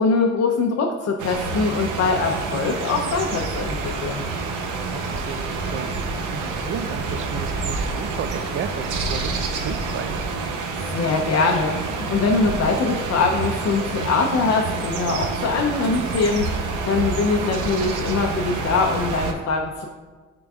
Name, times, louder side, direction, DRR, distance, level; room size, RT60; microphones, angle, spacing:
voice 1, 0.0-4.2 10.8-19.9, left 4 dB, 55° left, 1 dB, 0.7 m, -23 dB
sound 1, 1.2-19.3, right 4 dB, 85° right, 0.8 m, -28 dB
voice 2, 4.7-10.3, right 7 dB, 45° right, 11 dB, 0.4 m, -34 dB
10.5 x 3.9 x 2.4 m, 1.4 s
cardioid pair, 90°, 30 cm